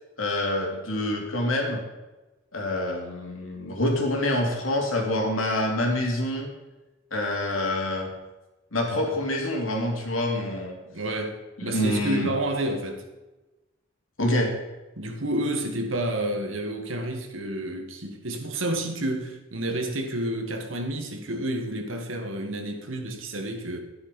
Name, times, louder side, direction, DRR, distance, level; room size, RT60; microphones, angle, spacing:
voice 1, 0.2-1.8 2.5-6.5 7.1-8.1 8.7-10.8 11.6-12.3 14.2-14.5, left 1 dB, 90° left, 2.7 m, -26 dB
voice 2, 10.9-13.0 15.0-23.8, right 1 dB, 80° right, 1.7 m, -30 dB
11.5 x 9.9 x 5.3 m
head